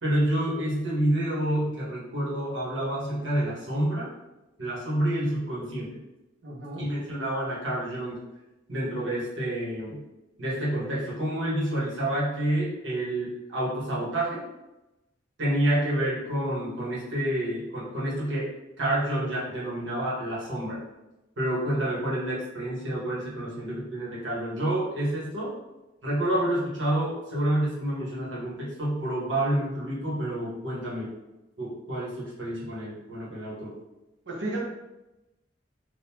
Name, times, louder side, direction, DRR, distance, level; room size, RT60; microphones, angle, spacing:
voice 1, 0.0-4.1 4.6-6.0 6.8-8.2 8.7-10.0 10.4-14.4 15.4-18.5 18.8-20.8 21.4-25.5 26.0-31.1 31.6-33.7, right 1 dB, 85° right, -7 dB, 1.4 m, -28 dB
voice 2, 6.4-6.9 34.3-34.6, right 2 dB, 65° right, -3 dB, 0.9 m, -33 dB
3.7 x 2.6 x 2.9 m, 0.98 s
head